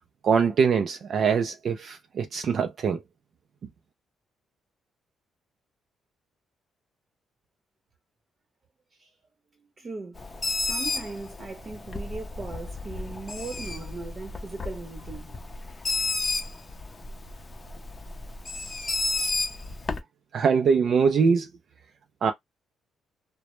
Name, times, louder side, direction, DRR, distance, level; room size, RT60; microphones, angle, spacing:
voice 1, 0.2-3.0 20.3-21.5 22.2-22.3, right 6 dB, 55° right, 0.3 m, -23 dB
voice 2, 9.5-10.2 10.6-15.4, right 3 dB, 40° right, 0.8 m, -39 dB
Bird, 10.1-20.0, left 3 dB, 25° left, 0.5 m, -32 dB
2.0 x 2.0 x 3.0 m
cardioid pair, 90°, 0 cm